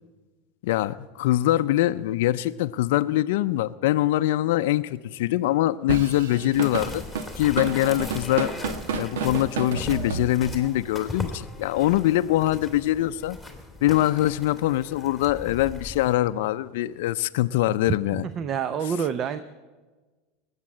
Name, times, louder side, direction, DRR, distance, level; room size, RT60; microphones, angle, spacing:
voice 1, 0.6-7.0 7.4-8.5 8.9-13.4 13.8-18.3, left 15 dB, 75° left, 11 dB, 0.4 m, -23 dB
Drum kit / Drum, 5.9-10.7, right 5 dB, 90° right, 1.1 m, -30 dB
sound 1, 6.5-16.2, left 2 dB, ahead, 2.5 m, -38 dB
voice 2, 18.4-19.4, right 7 dB, 35° right, 12 dB, 0.6 m, -27 dB
19.5 x 8.2 x 8.5 m, 1.3 s
supercardioid pair, 125°, 0 cm